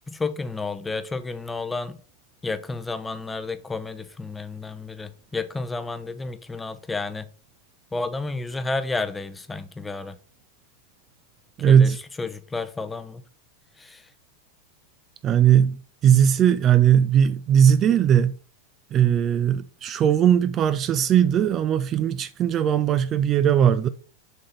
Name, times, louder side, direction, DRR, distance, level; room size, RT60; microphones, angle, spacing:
voice 1, 0.1-2.0 2.4-7.3 7.9-10.2 11.7-13.2 13.8-14.1, left 3 dB, 10° left, 0.7 m, -31 dB
voice 2, 11.6-12.0 15.2-18.4 18.9-23.9, right 9 dB, 30° right, 0.4 m, -19 dB
7.0 x 3.8 x 5.5 m
figure-of-eight pair, 90°, 0 cm